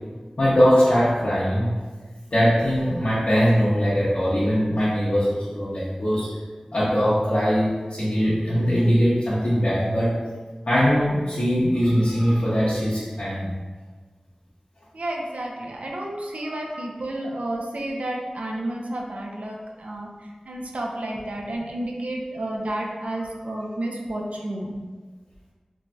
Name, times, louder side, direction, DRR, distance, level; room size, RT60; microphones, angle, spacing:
voice 1, 0.4-1.7 2.3-6.3 6.7-10.2 10.7-13.5 16.4-16.7, equal, 65° left, -10 dB, 0.6 m, -21 dB
voice 2, 14.9-24.7, right 1 dB, 80° right, -1 dB, 0.4 m, -31 dB
3.1 x 2.5 x 2.2 m, 1.4 s
wide cardioid pair, 65°, 2 cm